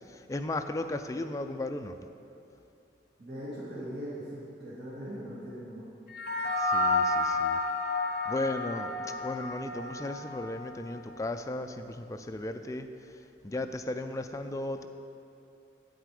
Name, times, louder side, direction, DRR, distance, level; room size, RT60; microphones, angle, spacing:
voice 1, 0.0-2.0 6.6-7.6 8.3-8.9 9.2-12.9 13.4-14.9, left 2 dB, 20° left, 7 dB, 0.4 m, -35 dB
voice 2, 3.2-5.8, equal, 65° right, -10 dB, 2.0 m, -40 dB
sound 1, 6.1-10.7, left 2 dB, 55° left, 0.9 m, -30 dB
8.4 x 8.0 x 4.8 m, 2.8 s
head